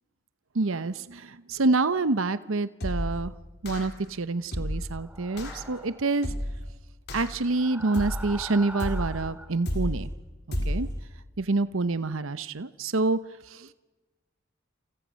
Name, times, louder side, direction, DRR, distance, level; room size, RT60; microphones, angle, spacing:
voice 1, 0.5-3.3 3.6-6.3 7.1-10.1 10.7-10.9 11.4-13.2 13.5-13.7, right 3 dB, 75° right, 14 dB, 0.9 m, -27 dB
sound 1, 2.8-3.2 3.6-4.0 4.5-4.9 5.4-5.6 6.2-6.6 7.1-7.5 7.9-8.4 8.8-9.2 9.6-10.1 10.5-10.9, equal, 55° left, 3.8 m, -31 dB
sound 2, 5.0-6.1 7.4-9.5, right 1 dB, 5° right, 2.6 m, -43 dB
29.0 x 28.5 x 6.4 m, 1.2 s
head